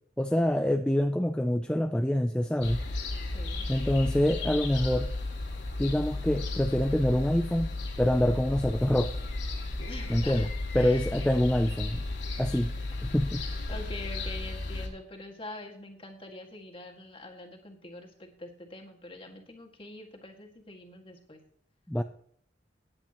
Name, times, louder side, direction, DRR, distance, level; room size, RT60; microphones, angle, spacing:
voice 1, 0.2-2.8 3.7-5.1 5.8-9.2 10.1-10.5 10.7-12.0 12.4-12.7 13.0-13.4 21.9-22.0, left 1 dB, 5° left, 6 dB, 0.3 m, -26 dB
sound 1, 2.6-14.9, left 2 dB, 75° left, 2.6 m, -34 dB
voice 2, 3.2-3.7 9.9-10.5 10.7-11.1 13.7-21.4, left 2 dB, 30° left, 2 dB, 1.9 m, -44 dB
17.5 x 8.8 x 3.0 m, 0.63 s
head